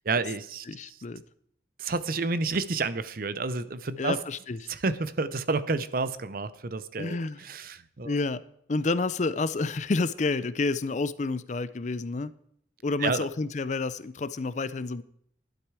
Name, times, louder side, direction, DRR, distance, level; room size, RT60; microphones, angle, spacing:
voice 1, 0.0-1.0 1.8-4.2 4.7-8.2 13.0-13.3, right 3 dB, 50° right, 13 dB, 0.7 m, -30 dB
voice 2, 0.7-1.2 4.0-4.7 7.0-7.4 8.0-8.4 8.7-12.3 12.8-15.0, left 3 dB, 40° left, 16 dB, 0.5 m, -29 dB
12.0 x 12.0 x 4.8 m, 0.68 s
head